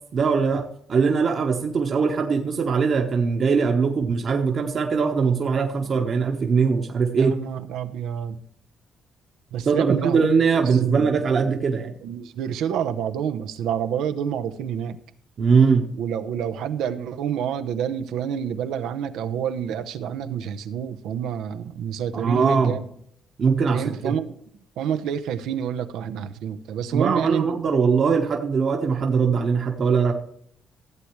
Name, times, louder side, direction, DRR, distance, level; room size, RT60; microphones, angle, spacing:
voice 1, 0.1-7.4 9.6-11.9 15.4-15.9 22.1-22.8 23.4-24.1 26.9-30.1, right 5 dB, 50° right, 2 dB, 1.2 m, -21 dB
voice 2, 7.2-8.4 9.5-10.3 10.5-11.4 12.0-15.0 16.0-22.9 23.7-24.3 24.8-27.6, right 8 dB, 90° right, 8 dB, 0.8 m, -28 dB
15.0 x 8.0 x 3.2 m, 0.68 s
cardioid pair, 90°, 0 cm